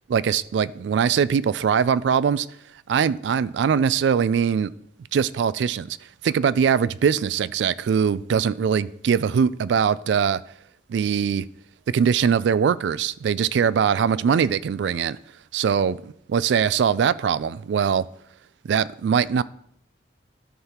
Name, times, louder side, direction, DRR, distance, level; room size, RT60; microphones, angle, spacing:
voice 1, 0.1-2.5 2.9-4.7 5.1-6.0 6.2-10.4 10.9-11.4 11.9-15.2 15.5-16.0 16.3-18.1 18.6-19.4, right 7 dB, 70° right, 0.3 m, -21 dB
13.0 x 5.6 x 2.9 m
head